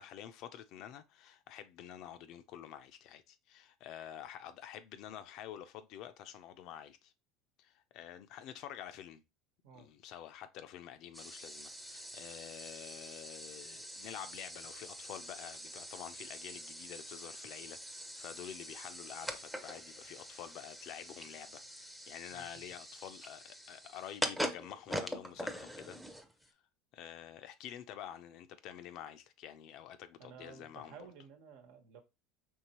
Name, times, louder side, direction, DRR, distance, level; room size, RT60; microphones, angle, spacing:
voice 1, 0.0-7.1 7.6-9.2 9.7-26.0 26.9-31.0, left 10 dB, 60° left, 0.5 m, -48 dB
sound 1, 11.1-26.5, equal, ahead, 0.6 m, -44 dB
voice 2, 22.3-22.6 30.2-32.0, right 6 dB, 75° right, 1.1 m, -54 dB
4.6 x 3.2 x 2.9 m
supercardioid pair, 105°, 0 cm